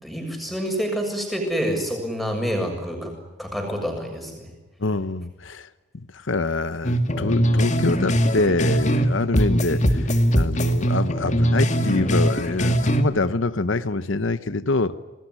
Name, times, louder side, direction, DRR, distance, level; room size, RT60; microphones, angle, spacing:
voice 1, 0.0-3.1 3.4-4.5, equal, ahead, 2 dB, 7.0 m, -27 dB
voice 2, 4.8-5.7 6.1-15.0, left 3 dB, 70° left, 13 dB, 0.9 m, -25 dB
sound 1, 6.8-9.1 9.3-13.0, equal, 35° left, 2.2 m, -21 dB
28.0 x 20.0 x 10.0 m, 1.1 s
head